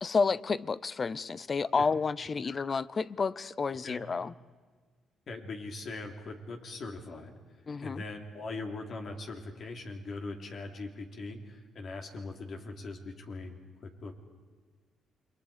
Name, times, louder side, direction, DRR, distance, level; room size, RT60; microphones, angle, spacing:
voice 1, 0.0-4.3 7.7-8.0, left 4 dB, 35° left, 19 dB, 0.7 m, -30 dB
voice 2, 5.3-7.3 7.8-14.1, left 3 dB, 55° left, 3 dB, 3.4 m, -41 dB
28.5 x 24.5 x 5.2 m, 1.4 s
cardioid pair, 90°, 0 cm